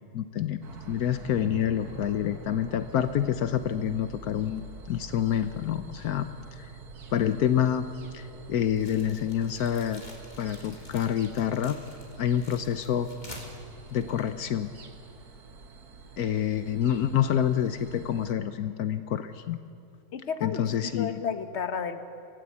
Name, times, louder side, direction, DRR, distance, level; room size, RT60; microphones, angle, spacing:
voice 1, 0.1-0.6 0.9-6.3 6.6-6.7 7.1-7.9 8.1-10.0 10.4-11.8 12.2-13.1 13.9-14.7 16.2-19.6 20.4-21.2, left 9 dB, 75° left, 10 dB, 1.3 m, -27 dB
sound 1, 0.6-18.3, right 4 dB, 80° right, 2.1 m, -47 dB
sound 2, 1.3-11.7, equal, ahead, 7.1 m, -54 dB
sound 3, 8.8-14.9, left 1 dB, 30° left, 3.2 m, -48 dB
voice 2, 20.1-20.7 21.0-22.1, left 6 dB, 50° left, 8 dB, 1.4 m, -32 dB
26.0 x 17.0 x 8.4 m, 2.4 s
omnidirectional pair, 1.6 m